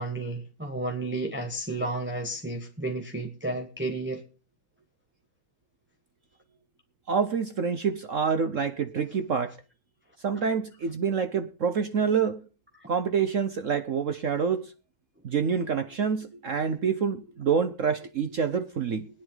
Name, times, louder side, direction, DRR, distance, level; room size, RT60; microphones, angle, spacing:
voice 1, 0.0-4.2 12.8-12.9, right 2 dB, 5° right, 1.2 m, -32 dB
voice 2, 7.1-9.6 10.2-12.4 12.9-14.7 15.2-19.1, right 6 dB, 60° right, 0.8 m, -27 dB
20.5 x 10.0 x 3.9 m
omnidirectional pair, 2.4 m